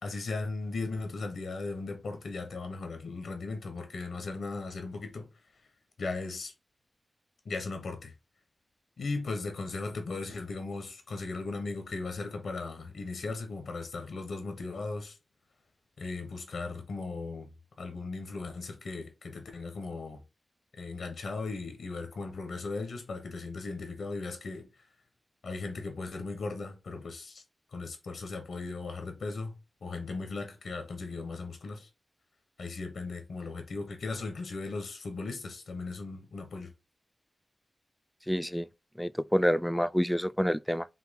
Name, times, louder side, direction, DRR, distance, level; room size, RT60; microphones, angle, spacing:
voice 1, 0.0-5.3 6.0-6.5 7.4-8.1 9.0-15.2 16.0-17.5 17.8-20.2 20.8-24.7 25.4-27.4 27.7-29.6 29.8-31.9 32.6-36.7, left 3 dB, 90° left, 1.2 m, -37 dB
voice 2, 38.3-38.7 39.0-40.9, equal, 5° left, 0.3 m, -27 dB
5.7 x 2.3 x 3.7 m
cardioid pair, 45°, 0 cm